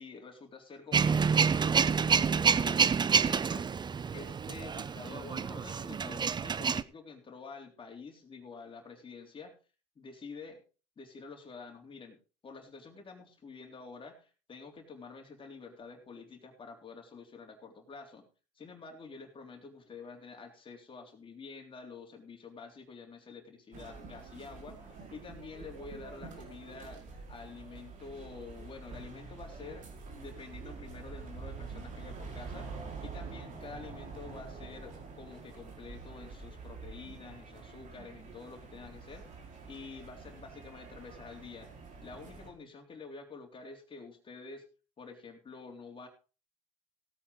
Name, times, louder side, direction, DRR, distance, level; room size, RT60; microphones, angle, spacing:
voice 1, 0.0-3.7 4.1-9.5 10.0-10.6 11.0-12.2 12.4-18.3 18.6-32.7 33.0-41.7 42.0-44.6 45.0-46.1, left 4 dB, 35° left, 3 dB, 3.7 m, -48 dB
Male speech man speaking / Vehicle / Engine starting, 0.9-6.8, right 6 dB, 30° right, 0.7 m, -28 dB
sound 1, 23.7-42.5, right 4 dB, 55° right, 4.6 m, -46 dB
17.0 x 8.9 x 4.0 m, 0.35 s
supercardioid pair, 85°, 16 cm